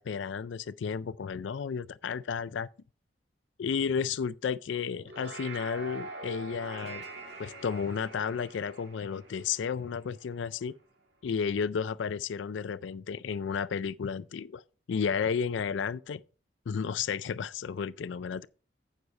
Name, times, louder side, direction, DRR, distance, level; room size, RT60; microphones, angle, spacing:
voice 1, 0.0-2.7 3.6-7.0 7.4-10.7 11.2-14.6 14.9-16.2 16.7-18.5, left 6 dB, 85° left, 0.4 m, -32 dB
sound 1, 4.9-10.5, right 3 dB, 65° right, 1.9 m, -44 dB
9.5 x 6.6 x 4.1 m
head